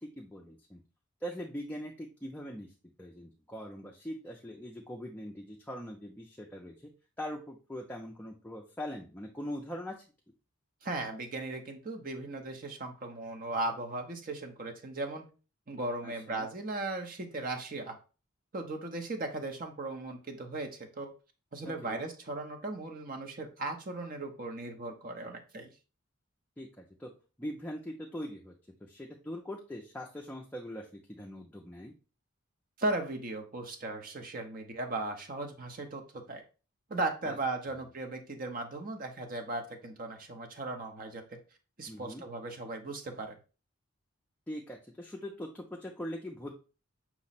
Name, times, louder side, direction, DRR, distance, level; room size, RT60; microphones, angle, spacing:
voice 1, 0.0-0.8 1.2-2.7 3.0-6.9 7.2-9.9 16.0-16.5 21.8-22.0 26.6-27.1 27.4-28.5 28.8-31.9 37.2-37.4 41.9-42.2 44.5-46.5, equal, 10° left, -1 dB, 0.4 m, -42 dB
voice 2, 10.8-15.3 15.7-18.0 18.5-21.1 21.5-25.7 32.8-36.4 36.9-41.2 41.8-43.3, right 2 dB, 40° right, 4 dB, 0.7 m, -37 dB
5.8 x 2.1 x 4.1 m, 0.34 s
head